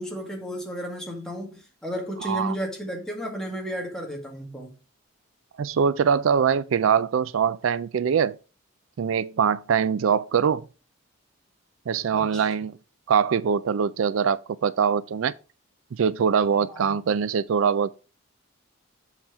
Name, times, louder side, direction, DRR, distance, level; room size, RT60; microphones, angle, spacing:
voice 1, 0.0-4.7 12.1-12.5 16.7-17.0, equal, 5° left, 1.7 m, -33 dB
voice 2, 2.2-2.5 5.6-8.4 9.0-10.7 11.9-12.7 13.1-15.3 15.9-17.9, right 7 dB, 75° right, 0.4 m, -23 dB
7.4 x 4.5 x 4.8 m
head